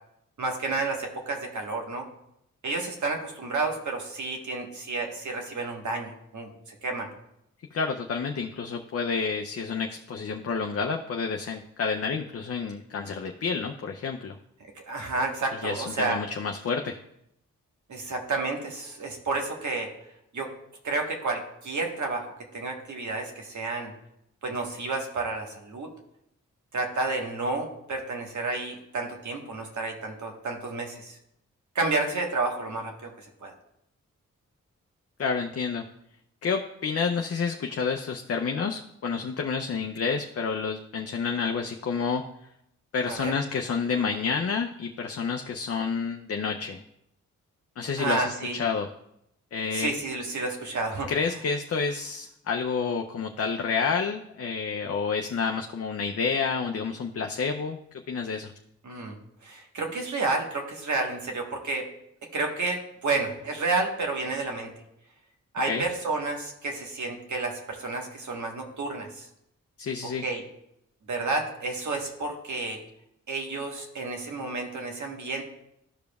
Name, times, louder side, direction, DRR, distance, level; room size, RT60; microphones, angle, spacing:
voice 1, 0.4-2.1 2.6-7.1 14.7-16.2 17.9-19.9 20.3-20.5 20.8-23.9 24.4-25.9 26.7-31.2 31.7-33.5 43.1-43.3 48.0-48.6 49.7-51.1 58.8-59.1 59.4-61.9 62.3-64.7 65.5-69.3 70.0-70.4 71.1-72.8 73.3-75.4, right 3 dB, 70° right, 2 dB, 1.4 m, -30 dB
voice 2, 7.7-14.3 15.6-17.0 35.2-35.8 36.4-42.2 42.9-46.8 47.8-48.9 49.5-49.9 51.1-57.8 58.1-58.5 65.7-65.8 69.8-70.2, left 5 dB, 50° left, 3 dB, 0.6 m, -29 dB
13.5 x 5.0 x 2.3 m, 0.79 s
cardioid pair, 55°, 31 cm